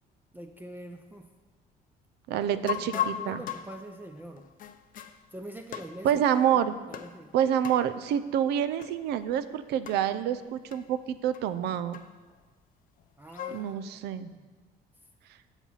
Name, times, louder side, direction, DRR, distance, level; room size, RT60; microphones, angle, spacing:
voice 1, 0.3-1.3 2.4-4.5 5.3-6.4 6.9-7.3 13.2-14.4, right 1 dB, 10° right, 3 dB, 0.5 m, -44 dB
voice 2, 2.3-3.4 6.0-6.7 7.3-12.0 13.5-14.3, right 9 dB, 80° right, 13 dB, 0.5 m, -27 dB
sound 1, 2.7-5.2 5.7-6.4 6.9-7.2 7.6-7.9 8.8-9.0 9.2-9.3 9.9-10.1 10.7-10.8 11.3-11.4 11.9-12.4 13.0-13.7, left 10 dB, 55° left, 0.6 m, -36 dB
7.1 x 7.1 x 5.7 m, 1.3 s
cardioid pair, 110°, 17 cm